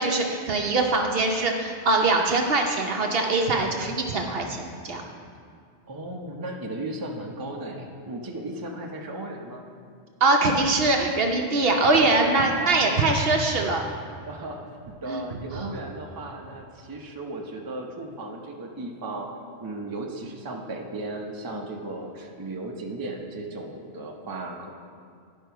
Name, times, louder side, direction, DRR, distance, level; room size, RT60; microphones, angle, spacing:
voice 1, 0.0-5.0 10.2-13.9 15.1-15.2 15.5-15.7, right 3 dB, 60° right, 2 dB, 0.9 m, -23 dB
voice 2, 5.9-9.6 12.5-13.0 14.2-19.3 19.6-24.7, right 2 dB, 20° right, 0 dB, 0.6 m, -36 dB
10.5 x 5.4 x 4.6 m, 2.2 s
omnidirectional pair, 1.2 m